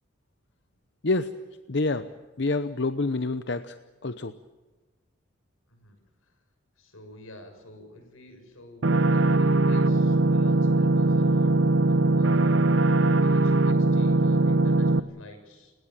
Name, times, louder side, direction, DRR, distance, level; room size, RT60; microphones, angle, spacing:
voice 1, 1.7-2.1 2.4-3.8 4.0-4.3, left 3 dB, 55° left, 10 dB, 0.8 m, -27 dB
voice 2, 6.8-11.5 11.9-15.7, left 1 dB, 85° left, 6 dB, 6.5 m, -48 dB
sound 1, 8.8-15.0, right 2 dB, 70° right, 0.8 m, -21 dB
29.5 x 17.5 x 7.5 m, 1.3 s
head